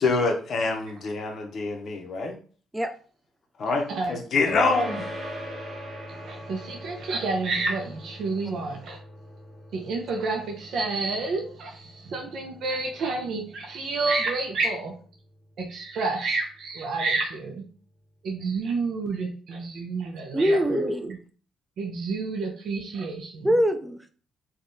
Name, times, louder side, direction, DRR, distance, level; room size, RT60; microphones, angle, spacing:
voice 1, 0.0-2.4 3.6-5.1, left 3 dB, 55° left, 3 dB, 0.6 m, -26 dB
sound 1, 4.5-14.2, equal, 35° right, 1.5 m, -40 dB
voice 2, 6.1-9.0 9.7-14.9 15.6-17.6 18.2-20.8 21.1-21.2 21.8-23.5, right 3 dB, 70° right, 2 dB, 0.5 m, -29 dB
voice 3, 20.3-21.1 23.4-24.1, equal, 10° right, 8 dB, 0.4 m, -23 dB
3.4 x 2.3 x 2.6 m, 0.42 s
cardioid pair, 90°, 0 cm